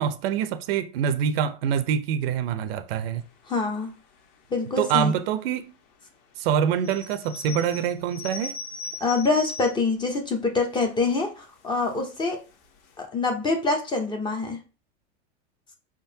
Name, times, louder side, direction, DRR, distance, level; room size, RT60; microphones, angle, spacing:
voice 1, 0.0-3.2 4.8-5.7 6.4-8.5, right 8 dB, 60° right, 0.6 m, -25 dB
voice 2, 3.5-3.9 4.5-5.1 9.0-12.4 13.0-14.6, left 3 dB, 15° left, 0.5 m, -25 dB
sound 1, 6.7-9.9 10.5-10.6 10.8-11.2 11.9-12.2 12.6-12.7 12.9-13.0, left 3 dB, 50° left, 1.1 m, -39 dB
4.9 x 3.7 x 2.7 m
supercardioid pair, 150°, 33 cm